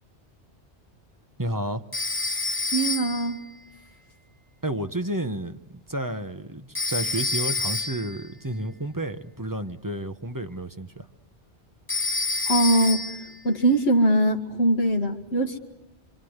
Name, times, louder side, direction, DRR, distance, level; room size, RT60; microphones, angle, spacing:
voice 1, 1.4-1.8 4.6-11.1, right 1 dB, 20° right, 8 dB, 1.0 m, -31 dB
Telephone, 1.9-3.3 6.7-8.1 11.9-13.3, left 3 dB, 10° left, 2.6 m, -28 dB
voice 2, 2.7-3.4 12.5-13.1 13.4-15.6, right 1 dB, 65° left, 2 dB, 2.0 m, -22 dB
27.5 x 26.5 x 8.1 m, 0.90 s
omnidirectional pair, 1.2 m